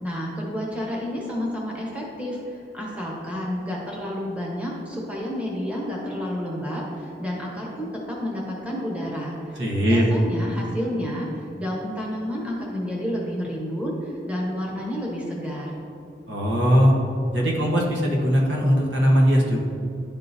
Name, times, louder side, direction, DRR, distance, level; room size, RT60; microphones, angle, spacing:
voice 1, 0.0-15.8, equal, 5° right, -3 dB, 0.9 m, -30 dB
voice 2, 9.6-10.0 16.3-17.0 17.3-19.6, equal, 80° right, -2 dB, 1.1 m, -19 dB
10.5 x 3.7 x 2.7 m, 2.7 s
head